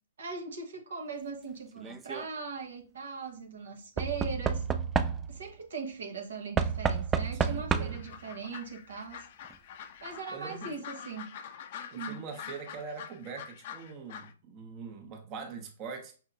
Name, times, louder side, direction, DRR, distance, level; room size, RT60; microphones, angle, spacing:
voice 1, 0.2-4.7 5.3-9.2 10.0-11.3 11.9-12.2, right 4 dB, 70° right, 1.0 m, -40 dB
Knock / Wood, 1.8-2.3 4.0-5.5 6.6-8.1 9.2-9.3 9.5-9.6, right 6 dB, 15° right, 0.3 m, -30 dB
voice 2, 7.3-8.0 10.3-10.7 11.9-16.1, right 5 dB, 35° right, 1.0 m, -43 dB
sound 1, 7.9-14.3, left 8 dB, 50° left, 0.4 m, -45 dB
5.6 x 2.7 x 2.5 m
hypercardioid pair, 125°, 0 cm